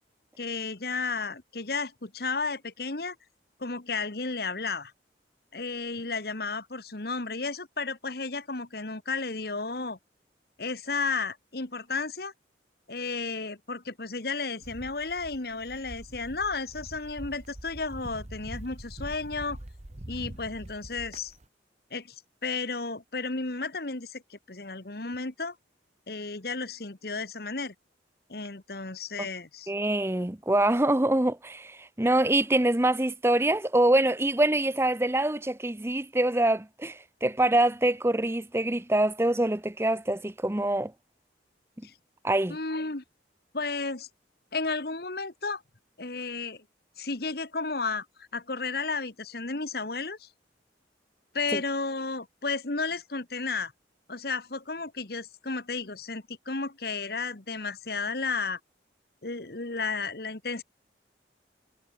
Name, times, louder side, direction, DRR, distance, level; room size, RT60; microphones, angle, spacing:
voice 1, 0.4-3.1 3.6-4.9 5.5-10.0 10.6-12.3 12.9-19.6 20.1-21.3 21.9-25.5 26.1-27.7 28.3-29.7 41.8-41.9 42.5-43.0 43.5-44.1 44.5-45.6 46.0-46.6 47.0-50.3 51.3-53.7 54.1-58.6 59.2-60.6, left 4 dB, 55° left, 1.6 m, -33 dB
sound 1, 14.6-21.4, right 1 dB, 35° right, 1.4 m, -44 dB
voice 2, 29.7-40.9 42.2-42.6 51.5-51.6, right 1 dB, 15° right, 0.7 m, -25 dB
head